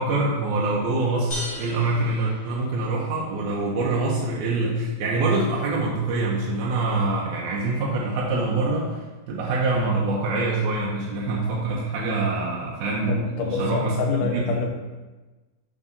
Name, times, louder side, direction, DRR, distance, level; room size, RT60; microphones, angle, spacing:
voice 1, 0.0-9.0 9.3-13.2 13.6-13.9 14.3-14.7, right 2 dB, 75° right, -4 dB, 2.1 m, -25 dB
sound 1, 1.3-3.2, equal, 45° left, 1.4 m, -36 dB
voice 2, 13.1-14.7, left 4 dB, 80° left, 2 dB, 2.2 m, -26 dB
11.0 x 3.9 x 2.7 m, 1.2 s
omnidirectional pair, 3.9 m